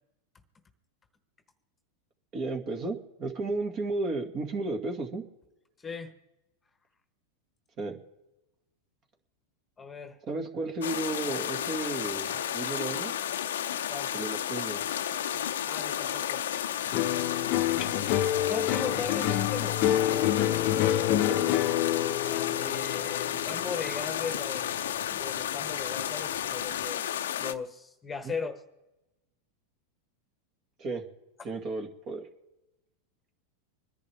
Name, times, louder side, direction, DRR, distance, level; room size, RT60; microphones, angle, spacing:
voice 1, 2.3-5.2 7.8-8.0 10.3-13.1 14.1-15.0 21.3-21.4 28.2-28.4 30.8-31.0 31.4-32.3, right 3 dB, 40° right, 5 dB, 2.0 m, -33 dB
voice 2, 9.8-10.2 13.9-14.1 15.7-16.4 18.5-20.3 22.2-24.7 25.1-27.0 27.4-28.6, left 5 dB, 15° left, 9 dB, 1.2 m, -37 dB
sound 1, 10.8-27.5, left 10 dB, 85° left, 0.6 m, -32 dB
sound 2, 16.9-25.4 25.7-26.3, left 12 dB, 50° left, 0.7 m, -28 dB
25.5 x 10.5 x 3.5 m, 0.99 s
hypercardioid pair, 120°, 0 cm